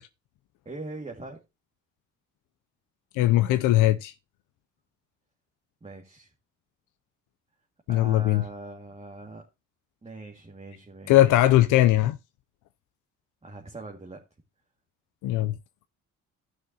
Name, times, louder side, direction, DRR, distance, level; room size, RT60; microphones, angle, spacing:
voice 1, 0.7-1.4 5.8-6.3 7.9-9.4 10.0-11.1 13.4-14.2, right 2 dB, 20° right, 2.1 m, -41 dB
voice 2, 3.1-4.1 7.9-8.4 11.1-12.2 15.2-15.6, left 14 dB, 85° left, 0.6 m, -20 dB
15.0 x 6.2 x 2.9 m
cardioid pair, 90°, 30 cm